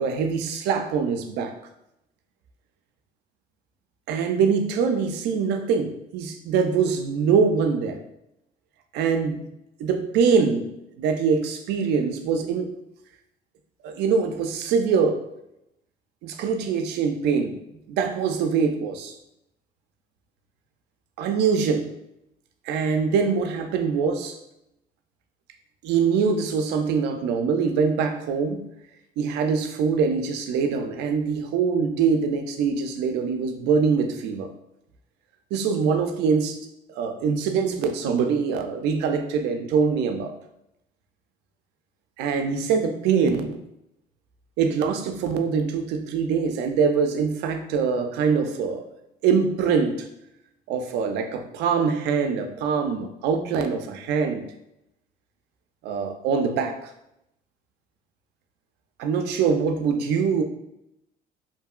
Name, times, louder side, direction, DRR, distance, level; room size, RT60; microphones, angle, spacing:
voice 1, 0.0-1.5 4.1-8.0 8.9-9.4 9.8-12.7 13.8-15.3 16.2-17.6 17.9-19.1 21.2-21.9 22.7-24.4 25.8-28.6 29.2-34.5 35.5-36.7 36.9-40.4 42.2-43.6 44.6-48.9 49.2-50.1 50.7-54.5 55.8-56.9 59.0-60.4, right 5 dB, 85° right, 6 dB, 0.4 m, -23 dB
2.8 x 2.6 x 2.3 m, 0.83 s
cardioid pair, 110°, 17 cm